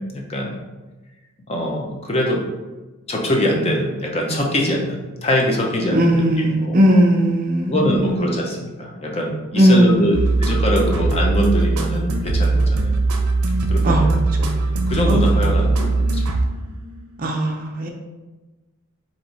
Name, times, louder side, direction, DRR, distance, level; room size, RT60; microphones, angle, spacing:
voice 1, 0.1-0.6 1.5-2.4 3.1-6.8 7.7-12.9 13.7-14.2 14.9-16.2, equal, 25° left, 0 dB, 0.7 m, -23 dB
voice 2, 5.9-8.5 9.6-10.3 13.8-14.0 15.1-15.4 17.2-17.9, equal, 40° right, 1 dB, 0.6 m, -18 dB
sound 1, 10.1-16.9, right 2 dB, 80° right, 0.6 m, -20 dB
4.5 x 2.7 x 4.0 m, 1.2 s
head